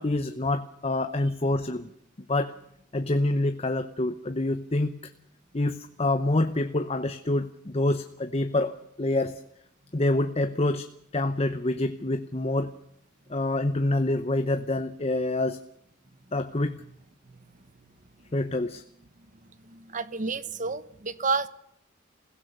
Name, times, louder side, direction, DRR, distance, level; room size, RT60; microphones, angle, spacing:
voice 1, 0.0-1.9 2.3-2.5 2.9-5.0 5.5-9.4 9.9-10.9 11.1-12.7 13.3-15.6 16.3-16.8 18.3-18.8, left 2 dB, 30° left, 0.9 m, -26 dB
voice 2, 19.6-21.5, right 4 dB, 40° right, 1.0 m, -30 dB
27.5 x 16.5 x 6.7 m
head